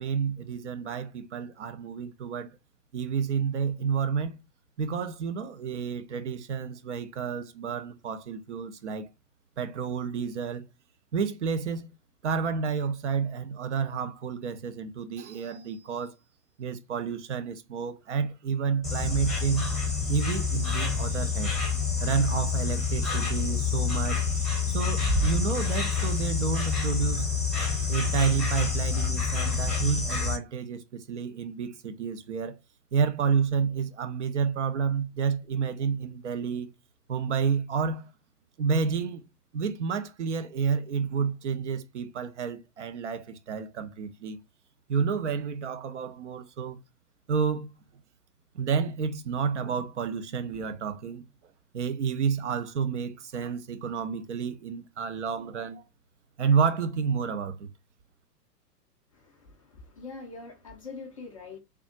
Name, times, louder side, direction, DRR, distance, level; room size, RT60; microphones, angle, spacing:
voice 1, 0.0-2.5 2.9-4.4 4.8-9.1 9.6-10.6 11.1-11.9 12.2-16.2 16.6-19.7 20.1-21.6 22.0-24.2 24.7-27.3 27.9-32.6 32.9-36.7 37.1-38.1 38.6-39.2 39.5-44.4 44.9-46.8 47.3-47.7 48.5-51.2 51.7-55.8 56.4-57.7, right 6 dB, 45° right, 0.5 m, -30 dB
Insect, 18.8-30.4, left 5 dB, ahead, 0.8 m, -27 dB
voice 2, 59.1-61.6, left 4 dB, 25° left, 0.4 m, -44 dB
3.4 x 2.3 x 2.7 m
figure-of-eight pair, 105°, 49 cm